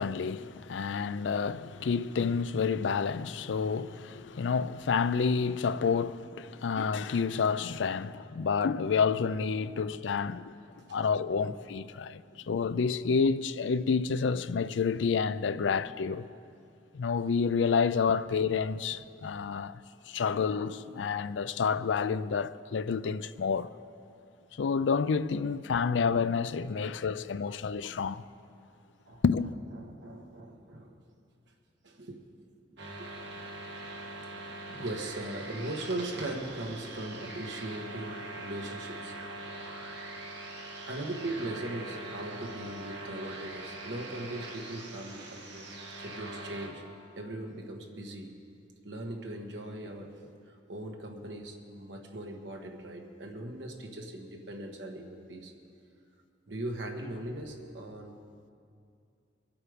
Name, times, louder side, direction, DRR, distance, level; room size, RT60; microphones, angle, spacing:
voice 1, 0.0-10.5 10.9-12.2 12.5-16.3 16.9-19.8 20.1-23.7 24.6-28.2 29.2-29.5, left 5 dB, 85° left, 0.4 m, -29 dB
voice 2, 12.3-12.8 18.9-19.0 25.8-25.9 27.7-27.8 29.1-29.2 29.8-31.0 31.8-32.5 33.0-33.2 34.7-39.1 40.9-45.7 46.0-46.8 47.1-48.3 48.8-50.2 50.5-55.5 56.5-58.2, right 1 dB, 85° right, 1.5 m, -40 dB
sound 1, 32.8-46.7, right 2 dB, 70° right, 1.9 m, -42 dB
23.0 x 8.7 x 5.2 m
head